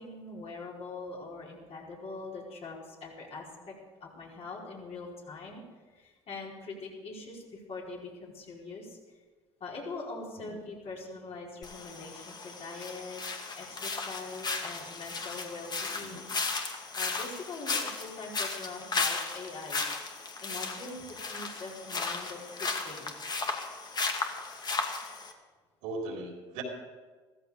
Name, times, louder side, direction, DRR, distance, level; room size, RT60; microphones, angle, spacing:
voice 1, 0.0-3.7 4.0-5.6 5.9-9.0 9.6-13.2 13.5-16.3 16.9-19.8 20.4-23.2, left 3 dB, 45° left, -3 dB, 4.8 m, -43 dB
sound 1, 11.6-25.3, left 4 dB, 30° left, 2.2 m, -35 dB
voice 2, 25.8-26.6, right 3 dB, 70° right, 1 dB, 3.6 m, -38 dB
15.0 x 15.0 x 5.0 m, 1.4 s
hypercardioid pair, 70°, 14 cm